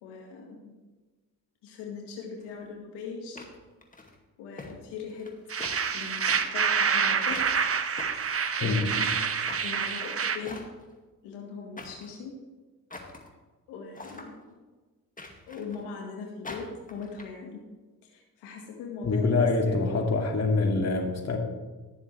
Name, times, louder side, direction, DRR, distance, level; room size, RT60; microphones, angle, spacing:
voice 1, 0.0-0.7 1.6-3.5 4.4-5.3 5.9-7.4 8.1-8.3 8.6-10.6 11.2-12.3 13.7-14.4 15.5-17.6 18.0-20.0, left 5 dB, 85° left, 0 dB, 1.9 m, -40 dB
sound 1, 2.4-2.5 3.4-4.1 4.6-4.7 5.0-5.3 5.6-5.8 6.3-6.4 7.3-7.5 8.0-8.8 9.4-9.7 10.4-10.9 11.8-12.1 12.9-13.3 13.9-14.3 15.2-15.8 16.4-17.2, left 2 dB, 20° left, 2.1 m, -43 dB
sound 2, 5.5-10.4, right 6 dB, 35° right, 1.0 m, -27 dB
voice 2, 8.6-9.0 19.0-21.4, left 3 dB, 40° left, 2 dB, 2.3 m, -25 dB
18.5 x 7.0 x 3.3 m, 1.3 s
supercardioid pair, 60°, 39 cm